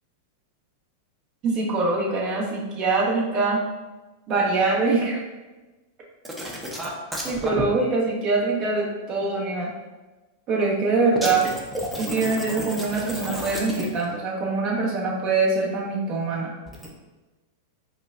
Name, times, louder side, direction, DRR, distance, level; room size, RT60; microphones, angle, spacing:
voice 1, 1.4-3.6 4.3-5.2 7.2-9.7 10.5-11.5 12.0-16.5, right 3 dB, 45° right, -4 dB, 1.2 m, -23 dB
sound 1, 6.2-7.6 11.2-14.1 16.7-16.9, equal, 10° right, 0.6 m, -32 dB
4.8 x 2.3 x 2.5 m, 1.2 s
hypercardioid pair, 115°, 0 cm